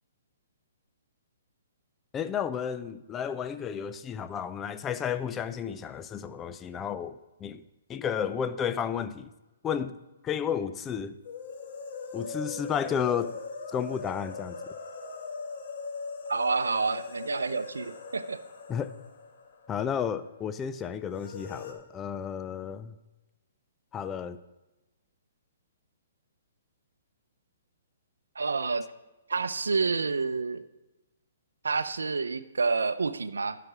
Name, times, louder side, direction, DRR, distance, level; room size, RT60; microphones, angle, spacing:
voice 1, 2.1-7.6 7.9-9.3 9.6-10.0 10.2-11.1 12.1-13.4 13.7-14.6 18.7-18.9 19.7-22.9 23.9-24.4, left 8 dB, 20° left, 12 dB, 0.4 m, -32 dB
sound 1, 11.2-20.1 20.3-20.4 21.1-21.7, left 4 dB, 55° left, 1.5 m, -40 dB
voice 2, 16.3-18.4 28.4-28.9 29.3-30.6 31.6-33.6, right 4 dB, 90° right, 13 dB, 0.5 m, -28 dB
10.5 x 5.9 x 4.9 m, 1.1 s
hypercardioid pair, 140°, 0 cm